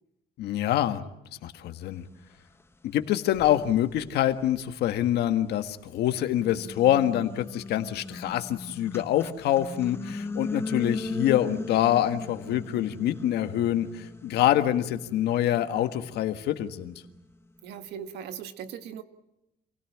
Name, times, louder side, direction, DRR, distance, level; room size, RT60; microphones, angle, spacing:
voice 1, 0.4-1.0 1.4-2.0 2.9-16.9, left 12 dB, 75° left, 8 dB, 1.6 m, -25 dB
sound 1, 2.6-2.7 3.3-5.6 6.1-17.4, left 3 dB, 15° left, 1.2 m, -38 dB
voice 2, 17.6-19.0, right 8 dB, 80° right, 9 dB, 1.7 m, -39 dB
27.5 x 17.0 x 8.6 m, 0.91 s
cardioid pair, 110°, 17 cm